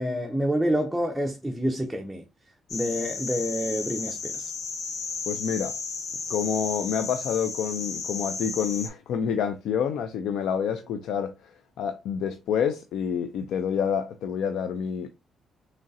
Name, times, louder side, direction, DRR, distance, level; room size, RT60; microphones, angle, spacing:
voice 1, 0.0-2.2 2.7-4.5, equal, ahead, 0.5 m, -28 dB
sound 1, 2.7-8.9, left 4 dB, 65° left, 0.8 m, -34 dB
voice 2, 5.3-5.7 6.3-11.5 11.8-15.1, left 7 dB, 80° left, 0.3 m, -28 dB
3.6 x 3.1 x 2.6 m
cardioid pair, 90°, 0 cm